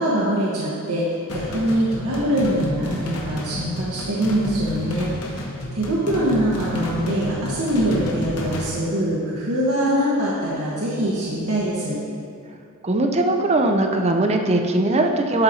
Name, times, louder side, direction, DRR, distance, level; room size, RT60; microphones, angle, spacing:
voice 1, 0.0-12.0, equal, 70° right, -7 dB, 1.2 m, -23 dB
sound 1, 1.3-8.7, left 1 dB, 90° left, 1.2 m, -31 dB
voice 2, 12.8-15.4, right 2 dB, 30° right, 3 dB, 0.6 m, -20 dB
11.5 x 4.3 x 4.2 m, 2.4 s
head